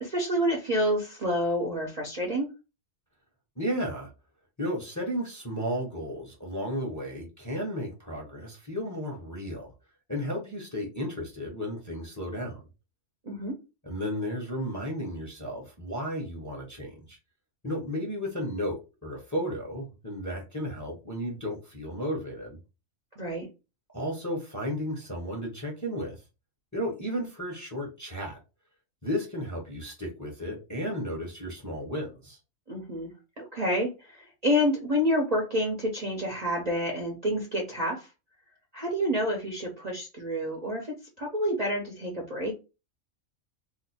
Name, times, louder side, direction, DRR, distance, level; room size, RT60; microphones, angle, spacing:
voice 1, 0.0-2.5 13.2-13.5 23.2-23.5 32.7-33.1 33.4-38.1 38.7-42.5, equal, 40° right, 0.6 m, -28 dB
voice 2, 3.6-4.1 4.6-9.7 10.1-12.6 13.8-17.2 17.6-22.6 23.9-26.2 26.7-28.4 29.0-32.4, equal, 15° left, 0.7 m, -33 dB
2.5 x 2.4 x 4.1 m
omnidirectional pair, 1.4 m